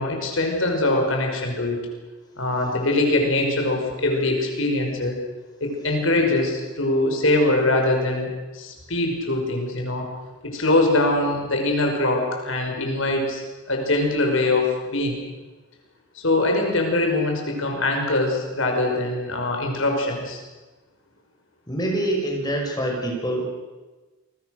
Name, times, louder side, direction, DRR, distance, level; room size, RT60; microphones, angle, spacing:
voice 1, 0.0-1.8 2.4-5.2 5.6-10.1 10.4-15.2 16.2-20.4, left 2 dB, 70° left, 2 dB, 5.6 m, -23 dB
voice 2, 21.7-23.4, right 1 dB, 20° left, 0 dB, 5.7 m, -25 dB
28.0 x 22.0 x 6.6 m, 1.2 s
head